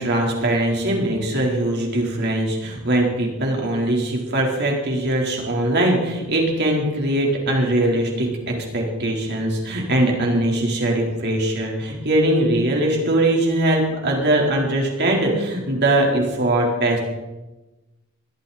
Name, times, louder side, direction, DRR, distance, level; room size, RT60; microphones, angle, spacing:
voice 1, 0.0-17.0, right 1 dB, 50° right, -1 dB, 4.1 m, -21 dB
20.5 x 13.5 x 4.3 m, 1.1 s
head